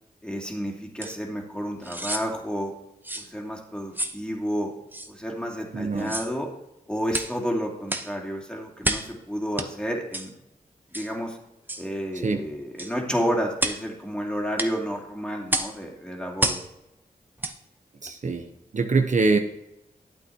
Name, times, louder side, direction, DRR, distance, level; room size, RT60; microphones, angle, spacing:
voice 1, 0.2-2.7 3.1-4.7 5.1-6.5 6.9-10.3 10.9-11.4 11.8-16.6, equal, 5° left, -1 dB, 2.6 m, -30 dB
sound 1, 1.0-1.2 1.8-2.3 3.0-3.3 3.9-4.2 4.9-5.1 6.0-6.3 7.1-7.4 7.9-8.1 8.8-9.1 9.6-9.7 10.1-10.3 10.9-11.1 11.7-11.9 12.8-13.0 13.6-13.8 14.6-14.7 15.5-15.8 16.4-16.7 17.4-17.6 18.1-18.2, right 1 dB, 10° right, 0.9 m, -29 dB
voice 2, 5.7-6.2 12.1-12.4 18.0-19.4, right 3 dB, 55° right, 5 dB, 0.9 m, -24 dB
12.0 x 8.4 x 2.9 m, 0.87 s
cardioid pair, 45°, 16 cm